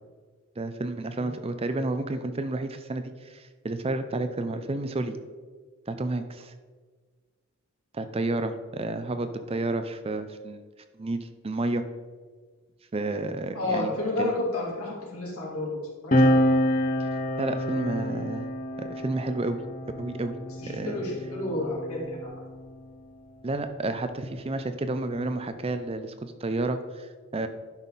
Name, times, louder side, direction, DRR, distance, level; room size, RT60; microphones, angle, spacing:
voice 1, 0.6-5.2 5.9-6.5 7.9-10.6 11.0-11.8 12.9-13.9 14.2-14.3 17.4-18.5 18.8-19.6 20.0-20.3 20.7-21.0 23.4-27.5, right 2 dB, 25° right, 9 dB, 0.4 m, -31 dB
voice 2, 13.5-15.8 16.0-16.3 20.6-22.3, left 2 dB, 80° left, -4 dB, 2.8 m, -30 dB
sound 1, 16.1-23.0 24.0-25.8, left 1 dB, 40° left, 0.8 m, -28 dB
11.5 x 5.6 x 4.0 m, 1.5 s
head